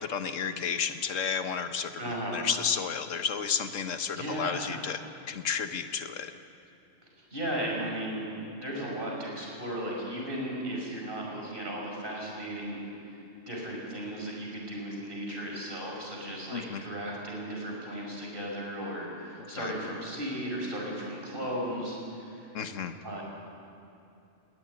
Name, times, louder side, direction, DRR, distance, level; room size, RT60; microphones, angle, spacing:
voice 1, 0.0-5.0 5.3-6.3 16.5-16.8 19.5-19.7 22.5-23.0, left 6 dB, 85° left, 8 dB, 1.5 m, -32 dB
voice 2, 2.0-2.5 4.2-4.8 7.3-13.2 13.5-22.5 23.0-23.2, right 1 dB, 45° right, -2 dB, 6.0 m, -36 dB
20.0 x 18.5 x 9.7 m, 2.7 s
omnidirectional pair, 1.3 m